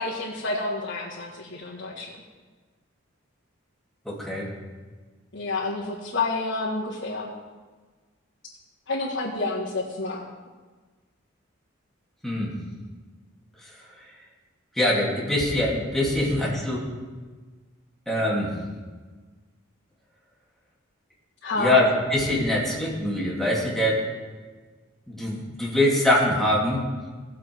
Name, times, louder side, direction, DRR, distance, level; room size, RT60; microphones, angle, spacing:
voice 1, 0.0-2.1 5.3-7.3 8.9-10.2 21.4-21.8, left 3 dB, 65° left, -8 dB, 2.1 m, -29 dB
voice 2, 4.0-4.5 12.2-12.5 14.8-16.9 18.1-18.5 21.6-24.0 25.1-26.8, left 1 dB, ahead, -4 dB, 2.6 m, -23 dB
18.0 x 7.5 x 4.6 m, 1.4 s
head